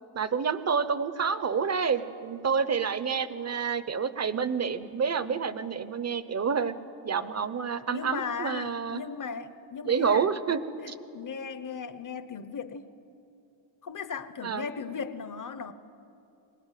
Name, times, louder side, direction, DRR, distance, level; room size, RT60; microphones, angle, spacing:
voice 1, 0.1-6.7 7.0-9.0 9.8-10.6 10.9-11.0 14.4-14.7, right 6 dB, 35° right, 14 dB, 0.8 m, -28 dB
voice 2, 7.8-12.9 13.8-15.7, left 6 dB, 40° left, 13 dB, 0.9 m, -37 dB
23.5 x 20.0 x 9.1 m, 2.8 s
wide cardioid pair, 170°, 46 cm